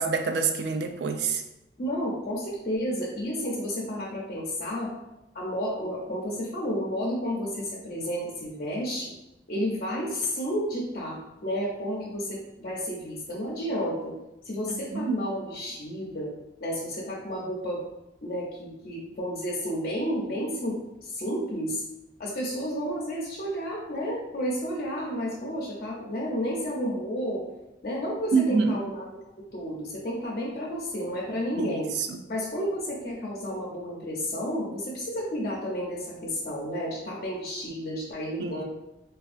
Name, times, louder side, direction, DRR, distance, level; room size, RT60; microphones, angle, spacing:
voice 1, 0.0-1.4 14.7-15.1 28.3-28.8 31.6-32.2 38.4-38.6, right 5 dB, 60° right, 5 dB, 0.3 m, -27 dB
voice 2, 1.8-4.9 5.3-9.1 9.5-14.1 14.4-16.3 16.6-17.8 18.2-21.8 22.2-27.4 27.8-29.1 29.5-31.9 32.3-38.6, equal, 50° left, -5 dB, 0.5 m, -31 dB
3.4 x 2.3 x 2.4 m, 0.94 s
head